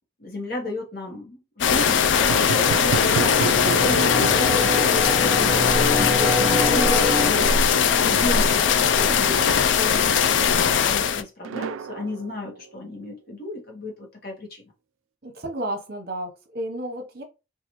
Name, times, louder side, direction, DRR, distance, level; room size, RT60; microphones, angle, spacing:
voice 1, 0.2-5.5 5.9-7.6 8.0-14.6, left 1 dB, 50° left, 1.0 m, -33 dB
sound 1, 1.6-11.2, left 7 dB, 65° left, 0.3 m, -20 dB
sound 2, 2.0-7.3, left 1 dB, 5° left, 0.8 m, -27 dB
sound 3, 2.2-5.6 5.8-5.9 7.2-8.6 11.4-13.0, right 6 dB, 80° right, 0.3 m, -32 dB
voice 2, 15.2-17.2, right 1 dB, 50° right, 0.9 m, -32 dB
3.9 x 2.4 x 3.0 m
head